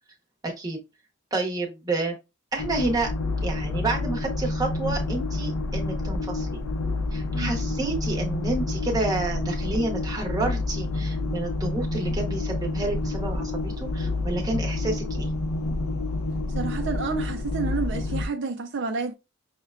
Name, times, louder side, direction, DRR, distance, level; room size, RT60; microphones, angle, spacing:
voice 1, 0.4-0.8 1.3-2.2 2.5-3.1 3.4-6.6 7.1-15.3, right 2 dB, 15° right, 0.7 m, -29 dB
sound 1, 2.6-18.3, left 2 dB, 90° left, 0.6 m, -28 dB
voice 2, 16.6-19.1, right 4 dB, 55° right, 0.4 m, -30 dB
5.4 x 2.1 x 2.3 m
head